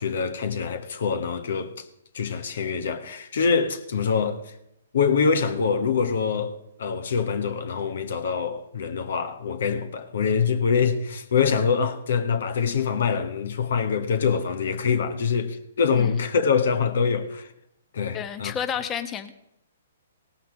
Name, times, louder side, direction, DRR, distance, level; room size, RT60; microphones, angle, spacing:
voice 1, 0.0-1.8 2.1-4.5 4.9-6.5 6.8-17.5 17.9-18.5, left 6 dB, 70° left, 1.3 m, -24 dB
voice 2, 18.1-19.3, left 8 dB, 20° left, 1.0 m, -30 dB
17.5 x 5.8 x 7.2 m
hypercardioid pair, 135°, 0 cm